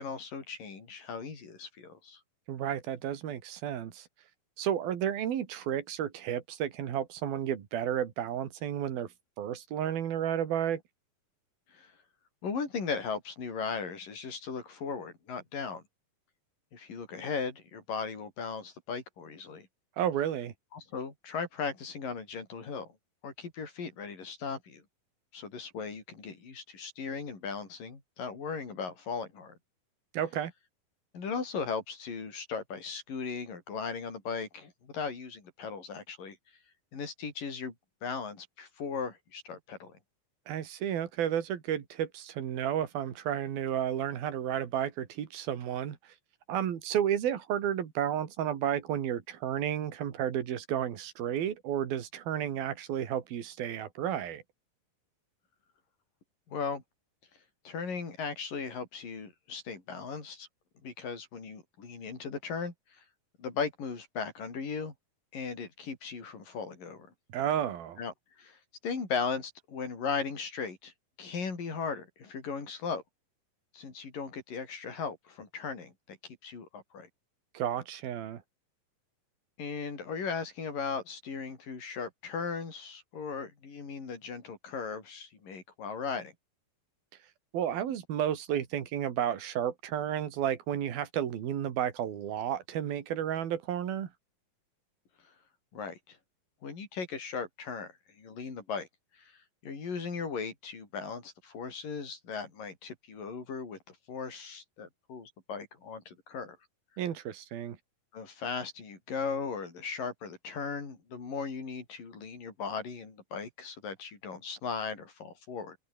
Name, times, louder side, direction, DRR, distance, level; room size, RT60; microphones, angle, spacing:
voice 1, 0.0-2.2 11.7-11.9 12.4-15.8 16.7-19.7 20.7-22.9 23.2-24.8 25.3-29.5 31.1-36.4 36.9-37.7 38.0-39.9 56.5-56.8 57.7-60.5 60.8-62.7 63.4-64.9 65.3-67.1 68.0-68.6 68.8-70.9 71.2-73.0 73.7-77.1 79.6-86.3 95.7-96.2 96.6-98.9 99.2-106.6 108.1-115.8, left 5 dB, 65° left, 7.2 m, -37 dB
voice 2, 2.5-4.1 4.6-9.1 9.4-10.8 20.0-20.5 30.1-30.5 40.5-46.0 46.5-54.4 67.3-68.0 77.5-78.4 87.5-94.1 107.0-107.8, right 10 dB, 85° right, 4.2 m, -32 dB
omnidirectional pair, 4.1 m